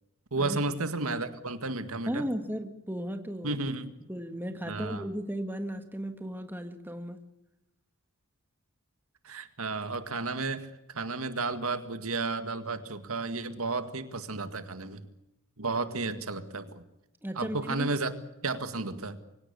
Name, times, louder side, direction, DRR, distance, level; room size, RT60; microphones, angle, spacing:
voice 1, 0.3-2.3 3.4-3.9 4.6-5.1 9.2-15.0 15.6-16.8 17.4-18.1 18.4-19.2, right 3 dB, 75° right, 10 dB, 1.9 m, -32 dB
voice 2, 2.1-3.6 4.1-7.2 17.2-17.9, equal, 10° right, 7 dB, 1.7 m, -35 dB
24.5 x 17.5 x 8.4 m, 0.90 s
head